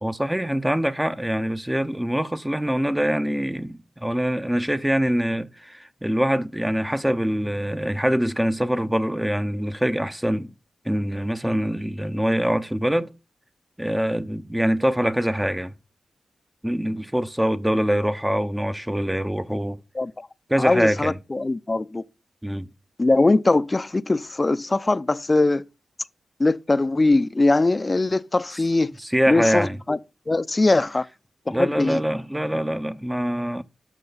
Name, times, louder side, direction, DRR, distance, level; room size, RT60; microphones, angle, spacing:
voice 1, 0.0-10.5 10.8-13.1 13.8-15.7 16.6-19.8 20.5-21.2 22.4-22.7 29.0-29.8 31.5-33.6, equal, 10° right, 0.8 m, -24 dB
voice 2, 20.0-20.3 20.6-22.0 23.0-25.6 26.4-28.9 29.3-30.0 30.3-31.1 31.5-32.0, left 2 dB, 30° left, 0.6 m, -21 dB
12.5 x 5.7 x 4.1 m
cardioid pair, 50°, 0 cm